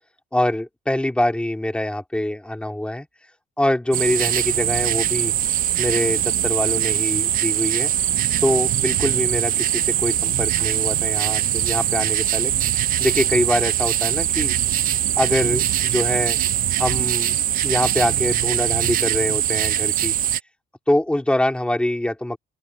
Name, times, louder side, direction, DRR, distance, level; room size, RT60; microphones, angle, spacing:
voice 1, 0.3-3.1 3.6-5.3 5.8-7.9 8.4-12.5 13.0-14.5 15.1-16.4 16.8-17.4 17.6-20.1 20.9-22.4, left 1 dB, 5° left, 3.4 m, -24 dB
sound 1, 3.9-20.4, right 12 dB, 55° right, 0.8 m, -22 dB
open air
cardioid pair, 110°, 17 cm